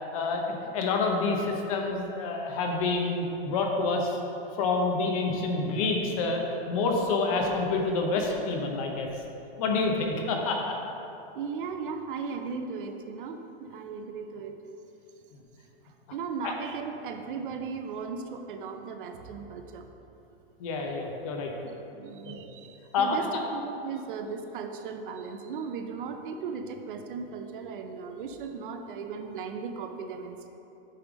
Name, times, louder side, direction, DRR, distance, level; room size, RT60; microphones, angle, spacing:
voice 1, 0.1-4.2 4.6-6.4 6.7-9.1 9.6-10.7 16.4-16.5 20.6-21.5 22.3-22.4 22.9-23.4, left 3 dB, 35° left, 1 dB, 0.7 m, -28 dB
voice 2, 11.3-14.5 15.8-19.9 21.6-30.5, right 5 dB, 55° right, 6 dB, 0.6 m, -37 dB
8.6 x 3.3 x 6.2 m, 2.9 s
supercardioid pair, 170°, 31 cm